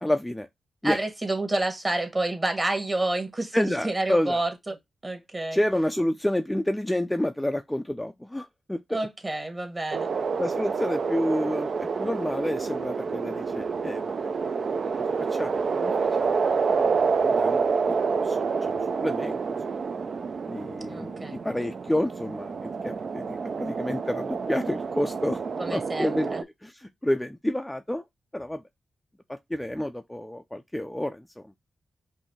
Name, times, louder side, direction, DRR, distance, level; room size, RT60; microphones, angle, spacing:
voice 1, 0.0-0.5 0.8-1.0 3.5-4.4 5.5-9.0 10.4-14.3 14.8-15.9 16.2-16.4 16.8-19.4 20.5-25.4 25.7-26.3 26.6-28.0 28.3-28.6 29.3-31.6, left 1 dB, 10° left, 0.4 m, -29 dB
voice 2, 0.8-4.8 5.0-5.6 8.9-10.1 20.9-21.4 25.6-26.4, right 2 dB, 25° right, 1.5 m, -29 dB
sound 1, 9.9-26.4, right 5 dB, 60° right, 0.4 m, -28 dB
5.4 x 2.7 x 3.1 m
cardioid pair, 75°, 0 cm